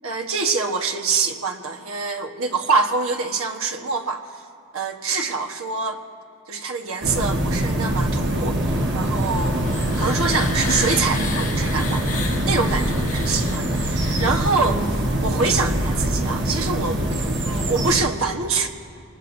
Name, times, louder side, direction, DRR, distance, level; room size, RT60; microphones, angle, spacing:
voice 1, 0.0-4.3 4.7-6.0 6.5-9.7 10.0-12.9 13.1-17.0 17.4-18.7, right 4 dB, 80° right, 3 dB, 1.3 m, -25 dB
sound 1, 7.0-18.0, right 1 dB, 55° right, 1.4 m, -23 dB
sound 2, 9.1-14.9, left 3 dB, 35° left, 1.3 m, -33 dB
26.0 x 20.0 x 2.7 m, 2.5 s
head